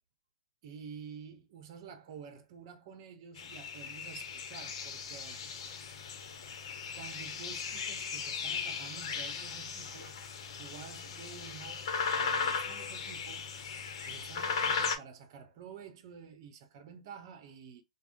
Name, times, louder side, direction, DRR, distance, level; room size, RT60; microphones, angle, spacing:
voice 1, 0.6-5.4 7.0-10.1 10.6-13.5 14.0-17.8, right 7 dB, 45° right, 0.8 m, -49 dB
sound 1, 3.4-15.0, left 5 dB, 55° left, 0.8 m, -37 dB
3.5 x 2.0 x 2.5 m
hypercardioid pair, 140°, 3 cm